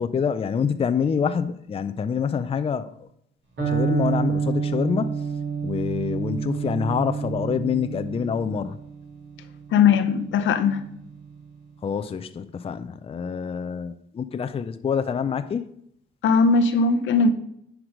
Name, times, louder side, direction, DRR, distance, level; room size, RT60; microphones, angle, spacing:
voice 1, 0.0-3.1 3.7-5.2 5.6-8.8 11.8-15.6, left 6 dB, 30° left, 0.4 m, -26 dB
Electric guitar, 3.6-11.4, right 6 dB, 65° right, 3.9 m, -29 dB
voice 2, 9.7-10.9 16.2-17.3, left 5 dB, 75° left, 0.8 m, -19 dB
9.7 x 4.7 x 5.1 m
cardioid pair, 90°, 20 cm